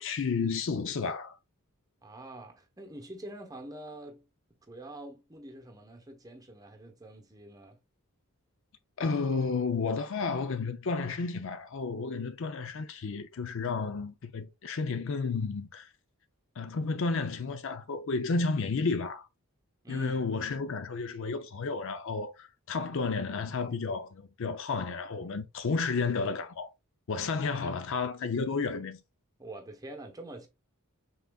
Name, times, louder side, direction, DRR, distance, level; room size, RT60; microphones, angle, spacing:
voice 1, 0.0-1.4 9.0-15.9 16.6-19.3 19.9-26.7 27.1-29.0, left 4 dB, 60° left, 0.5 m, -32 dB
voice 2, 2.0-4.3 4.7-7.8 19.8-20.2 29.4-30.5, right 1 dB, 15° right, 0.9 m, -45 dB
5.8 x 3.8 x 2.3 m
head